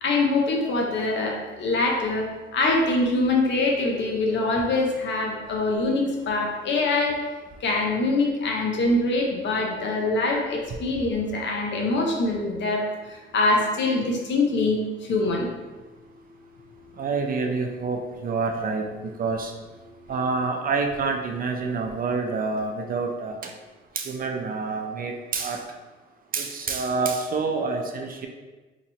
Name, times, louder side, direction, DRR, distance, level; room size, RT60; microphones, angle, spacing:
voice 1, 0.0-7.1 7.6-12.9 13.3-14.8 15.1-15.5, left 2 dB, 65° left, 0 dB, 0.8 m, -24 dB
voice 2, 17.0-19.5 20.1-23.5 24.0-25.6 26.3-28.3, right 4 dB, 45° right, 3 dB, 0.5 m, -27 dB
3.0 x 2.7 x 4.0 m, 1.2 s
cardioid pair, 90°, 20 cm